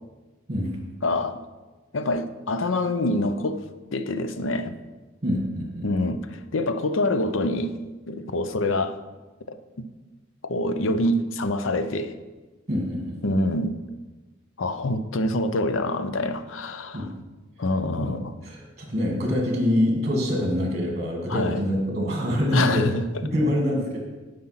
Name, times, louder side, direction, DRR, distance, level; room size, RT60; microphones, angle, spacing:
voice 1, 1.0-1.4 1.9-3.6 3.9-4.7 5.8-7.7 8.1-9.0 9.5-9.6 10.4-12.1 13.2-13.7 14.6-17.1 17.6-18.3 21.3-21.6 22.5-23.0, left 2 dB, 80° left, 10 dB, 0.6 m, -25 dB
voice 2, 5.2-5.9 12.7-13.4 16.9-17.2 18.0-18.2 18.4-22.9 23.3-24.0, equal, 35° right, 0 dB, 1.8 m, -25 dB
9.5 x 5.1 x 5.8 m, 1.2 s
head